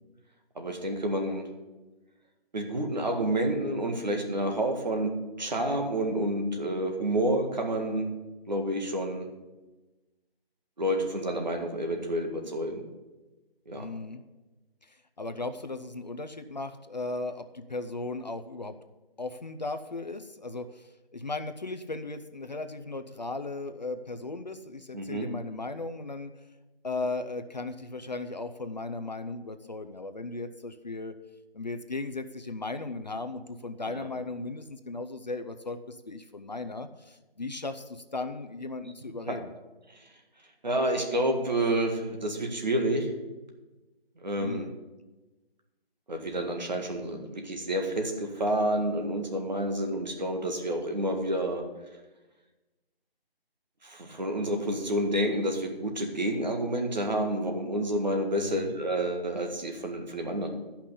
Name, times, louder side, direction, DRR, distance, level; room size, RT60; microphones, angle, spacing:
voice 1, 0.6-1.5 2.5-5.1 5.4-8.1 8.5-9.3 10.8-12.8 13.7-13.8 24.9-25.3 33.9-34.1 39.3-39.4 40.6-43.1 44.2-44.7 46.1-51.6 53.8-60.5, right 1 dB, 45° right, 4 dB, 1.9 m, -29 dB
voice 2, 13.7-14.2 14.9-18.7 19.2-26.3 26.8-31.1 31.5-39.5 44.4-44.7 58.4-58.7, left 3 dB, 45° left, 9 dB, 0.6 m, -36 dB
11.5 x 5.9 x 8.4 m, 1.1 s
figure-of-eight pair, 175°, 30 cm